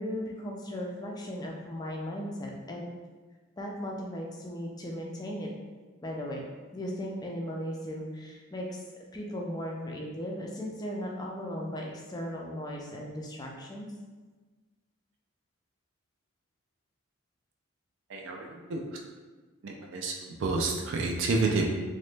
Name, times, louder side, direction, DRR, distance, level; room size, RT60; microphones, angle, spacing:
voice 1, 0.0-2.9 3.6-5.5 6.0-6.4 6.7-8.8 9.1-13.9, equal, 20° left, -1 dB, 0.3 m, -37 dB
voice 2, 18.1-18.4 18.7-18.8 19.6-20.1 20.4-21.7, right 3 dB, 60° right, 0 dB, 0.4 m, -29 dB
2.9 x 2.1 x 3.2 m, 1.3 s
head